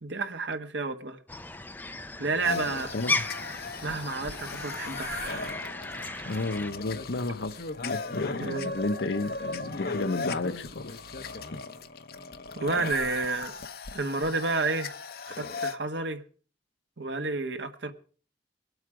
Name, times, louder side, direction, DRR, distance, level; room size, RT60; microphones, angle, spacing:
voice 1, 0.0-1.2 2.2-2.9 3.8-5.6 5.9-6.4 8.4-8.7 12.5-13.5 13.9-15.0 15.3-16.2 17.0-17.9, right 3 dB, 85° right, 1.4 m, -31 dB
sound 1, 1.3-6.7, left 3 dB, 10° left, 0.6 m, -35 dB
sound 2, 2.4-15.7, left 4 dB, 55° left, 0.9 m, -37 dB
voice 2, 2.9-3.2 6.2-7.6 7.9-11.0 11.5-11.6, left 2 dB, 85° left, 0.9 m, -32 dB
22.0 x 8.2 x 5.0 m
head